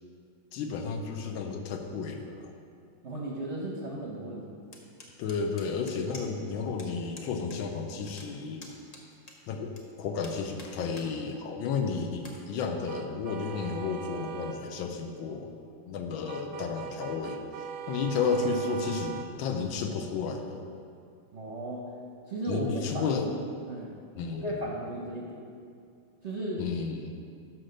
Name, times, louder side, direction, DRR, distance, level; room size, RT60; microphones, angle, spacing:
voice 1, 0.5-2.5 5.2-8.7 9.5-15.5 15.9-17.4 17.9-20.6 22.5-23.3 24.2-24.5 26.6-27.1, left 5 dB, 80° left, 4 dB, 1.5 m, -32 dB
voice 2, 3.0-4.6 21.3-21.9 22.3-23.2 23.7-23.9 24.3-25.4 26.2-26.6, right 1 dB, 55° right, -3 dB, 0.8 m, -35 dB
sound 1, 4.7-6.5 6.8-6.9 7.1-7.6 7.8-9.8 10.2-11.1 11.5-11.6 12.1-12.4, left 2 dB, 50° left, 0.4 m, -48 dB
sound 2, 12.9-14.6 16.3-19.3, right 7 dB, 75° right, 1.1 m, -40 dB
6.3 x 5.9 x 6.4 m, 2.4 s
omnidirectional pair, 2.2 m